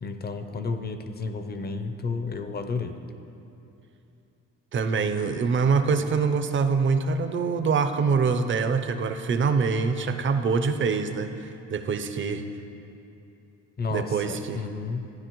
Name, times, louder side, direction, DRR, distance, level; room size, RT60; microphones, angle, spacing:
voice 1, 0.0-3.0 13.8-15.0, left 4 dB, 30° left, 8 dB, 0.6 m, -32 dB
voice 2, 4.7-12.4 13.9-14.6, right 5 dB, 40° right, 9 dB, 0.6 m, -25 dB
12.5 x 9.5 x 3.0 m, 2.8 s
cardioid pair, 90°, 30 cm